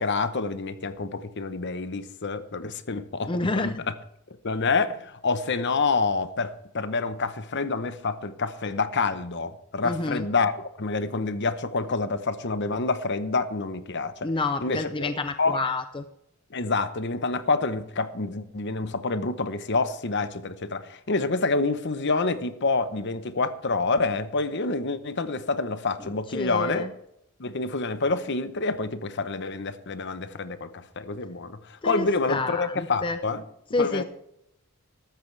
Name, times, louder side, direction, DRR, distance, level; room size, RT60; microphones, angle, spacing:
voice 1, 0.0-3.7 4.4-14.3 14.6-15.1 15.4-15.6 16.5-26.9 27.4-33.4 33.8-34.0, left 3 dB, 50° left, 11 dB, 0.9 m, -27 dB
voice 2, 3.3-3.7 9.8-10.2 14.2-16.0 26.3-26.9 31.8-33.2 33.7-34.0, left 3 dB, 20° left, 9 dB, 0.5 m, -28 dB
14.5 x 12.5 x 3.3 m, 0.78 s
head